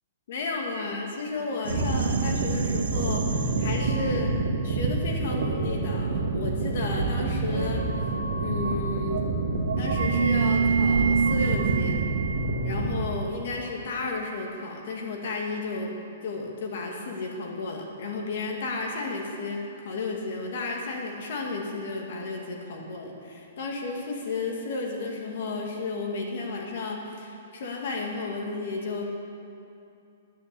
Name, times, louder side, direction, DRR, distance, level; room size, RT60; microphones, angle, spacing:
voice 1, 0.3-4.3 4.6-7.8 8.3-9.3 9.8-12.0 12.6-15.9 16.2-29.0, left 3 dB, 50° left, 0 dB, 2.2 m, -33 dB
sound 1, 1.6-13.0, right 4 dB, 85° right, 1.6 m, -26 dB
10.5 x 9.1 x 8.3 m, 2.6 s
hypercardioid pair, 170°, 0 cm